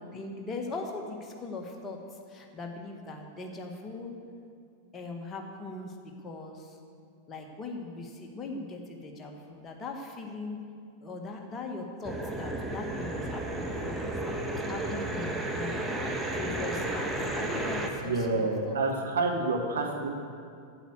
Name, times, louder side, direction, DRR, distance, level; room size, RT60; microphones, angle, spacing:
voice 1, 0.0-2.0 2.3-4.2 4.9-5.9 6.2-6.8 7.3-10.6 11.0-15.9 16.3-18.8, left 3 dB, 20° left, 1 dB, 1.6 m, -40 dB
sound 1, 12.0-17.9, right 1 dB, 5° right, 1.2 m, -33 dB
voice 2, 18.0-20.1, right 3 dB, 65° right, 1 dB, 1.7 m, -28 dB
8.9 x 8.6 x 8.2 m, 2.3 s
figure-of-eight pair, 90°, 0 cm